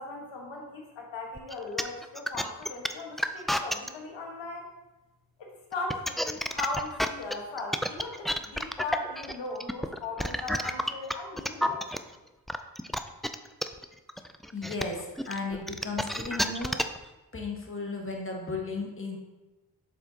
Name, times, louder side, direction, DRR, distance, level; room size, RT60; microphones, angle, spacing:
voice 1, 0.0-4.7 5.4-11.8, left 3 dB, 90° left, 0 dB, 1.4 m, -38 dB
sound 1, 1.4-3.9 5.7-12.0 12.5-17.0, equal, ahead, 0.3 m, -30 dB
voice 2, 14.5-16.8 17.3-19.2, left 3 dB, 30° left, 0 dB, 1.5 m, -35 dB
7.2 x 5.8 x 2.8 m, 1.1 s
cardioid pair, 50°, 43 cm